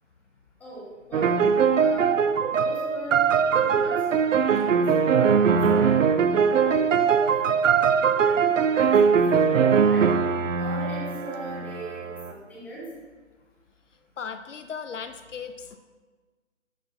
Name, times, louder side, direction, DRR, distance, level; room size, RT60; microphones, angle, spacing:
voice 1, 0.6-1.4 1.7-2.2 2.5-7.3 7.6-9.4 9.8-10.1 10.6-12.0 12.3-12.8, right 1 dB, 5° left, -7 dB, 1.2 m, -39 dB
sound 1, 1.1-12.3, right 6 dB, 75° right, 0.6 m, -21 dB
voice 2, 14.2-15.8, left 6 dB, 70° left, 10 dB, 0.6 m, -37 dB
12.0 x 4.6 x 2.7 m, 1.4 s
figure-of-eight pair, 155°, 38 cm